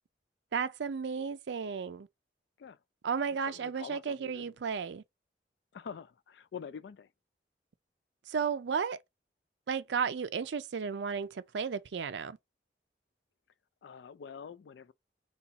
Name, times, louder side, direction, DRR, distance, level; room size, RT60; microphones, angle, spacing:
voice 1, 0.5-2.1 3.0-5.0 8.3-9.0 9.7-12.4, right 6 dB, 85° right, 0.4 m, -33 dB
voice 2, 3.2-4.5 5.7-7.1 13.8-14.9, left 6 dB, 75° left, 0.3 m, -46 dB
4.1 x 2.3 x 4.0 m
head